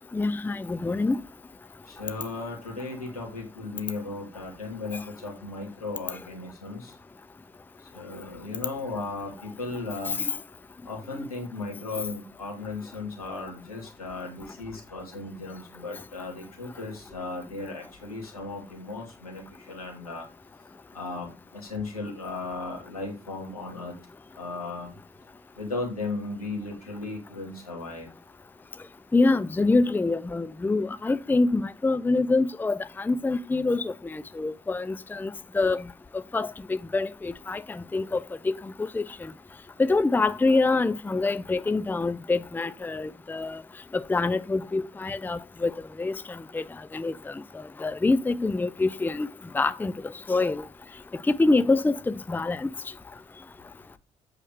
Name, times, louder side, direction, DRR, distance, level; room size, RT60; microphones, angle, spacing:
voice 1, 0.1-1.2 11.2-11.3 29.1-35.8 36.3-38.6 38.9-39.0 39.8-43.6 43.9-45.7 46.0-46.2 46.5-46.6 46.9-47.1 47.8-49.3 49.5-49.9 50.3-50.6 51.4-52.7, left 3 dB, 10° left, 0.5 m, -25 dB
voice 2, 1.9-7.0 7.8-10.2 10.8-20.3 20.9-23.9 24.4-24.9 25.6-28.1, left 3 dB, 85° left, 2.6 m, -36 dB
8.4 x 6.6 x 5.0 m
figure-of-eight pair, 45°, 18 cm